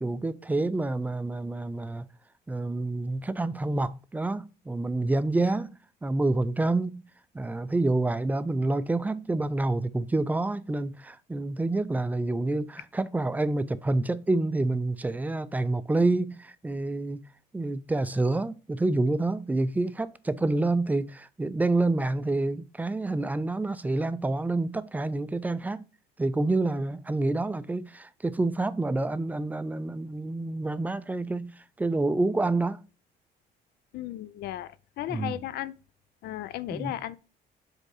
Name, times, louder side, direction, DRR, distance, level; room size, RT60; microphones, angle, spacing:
voice 1, 0.0-2.0 2.5-5.7 6.0-7.0 7.3-17.2 17.5-25.9 26.2-32.8 35.1-35.4 36.7-36.9, right 2 dB, 10° right, 0.4 m, -28 dB
voice 2, 33.9-35.7 36.2-37.2, left 13 dB, 70° left, 0.5 m, -35 dB
5.2 x 3.7 x 4.8 m
cardioid pair, 110°, 17 cm